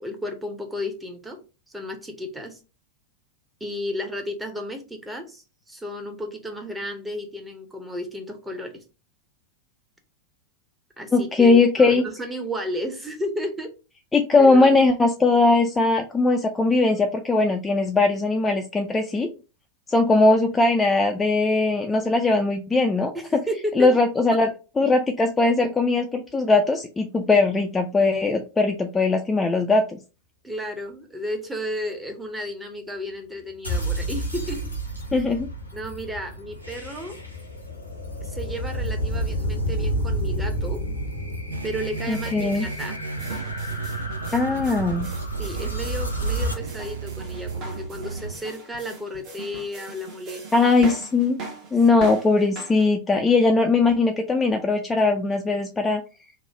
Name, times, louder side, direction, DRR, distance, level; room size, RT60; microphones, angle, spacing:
voice 1, 0.0-1.4 1.7-2.6 3.6-8.8 11.0-13.7 14.4-14.8 23.1-24.0 24.3-24.4 30.4-34.6 35.7-37.2 38.2-40.8 41.6-43.0 45.4-50.7 51.9-52.0, left 1 dB, 10° right, 4 dB, 0.7 m, -33 dB
voice 2, 11.1-12.0 14.1-19.3 19.9-23.1 23.8-24.5 24.8-30.0 35.1-35.5 42.1-42.7 44.3-45.1 50.5-51.4 51.7-56.0, left 3 dB, 15° left, 4 dB, 0.3 m, -20 dB
sound 1, 33.6-46.5, right 1 dB, 90° left, 0.8 m, -30 dB
sound 2, 41.5-48.3, right 4 dB, 70° right, 0.3 m, -34 dB
sound 3, 41.9-52.9, right 3 dB, 35° right, 0.9 m, -40 dB
3.0 x 2.1 x 3.8 m, 0.32 s
figure-of-eight pair, 90°, 0 cm